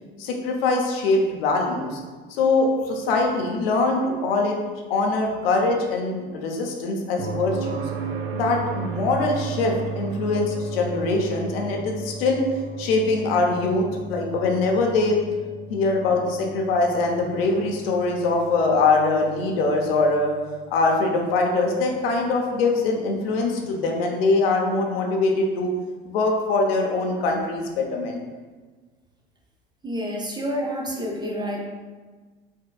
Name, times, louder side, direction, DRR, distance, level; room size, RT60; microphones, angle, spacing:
voice 1, 0.2-2.0 2.3-4.6 4.9-7.9 8.3-12.4 12.8-15.2 15.7-20.3 20.7-25.7 26.0-28.2, left 3 dB, 75° left, 1 dB, 0.7 m, -23 dB
sound 1, 7.2-21.0 23.3-23.4, right 5 dB, 80° right, 0.5 m, -35 dB
voice 2, 29.8-31.7, equal, 15° right, -1 dB, 0.4 m, -28 dB
4.3 x 2.2 x 2.2 m, 1.4 s
hypercardioid pair, 80°, 30 cm